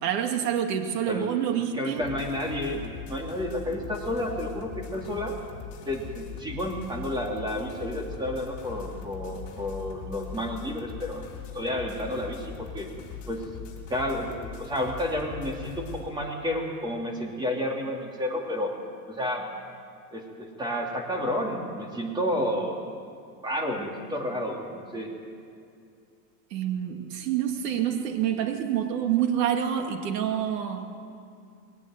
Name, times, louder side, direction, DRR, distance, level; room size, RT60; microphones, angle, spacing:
voice 1, 0.0-2.0 26.5-30.9, right 9 dB, 90° right, 5 dB, 2.4 m, -27 dB
voice 2, 1.7-5.3 5.9-11.2 11.5-12.9 13.3-13.4 13.9-18.7 19.1-19.5 20.1-22.8 23.4-25.1, left 1 dB, 10° right, 0 dB, 2.9 m, -31 dB
sound 1, 2.0-16.1, left 7 dB, 40° left, 4.4 m, -41 dB
21.5 x 18.5 x 9.3 m, 2.4 s
supercardioid pair, 160°, 48 cm